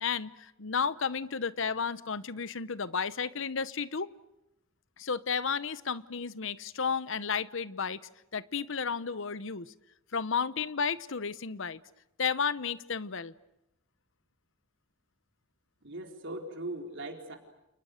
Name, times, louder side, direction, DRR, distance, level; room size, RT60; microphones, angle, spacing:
voice 1, 0.0-4.1 5.0-8.0 8.3-9.7 10.1-11.8 12.2-13.3, left 6 dB, 65° left, 16 dB, 1.0 m, -32 dB
voice 2, 15.8-17.4, right 2 dB, 65° right, 3 dB, 4.3 m, -39 dB
29.5 x 29.5 x 6.6 m, 0.88 s
head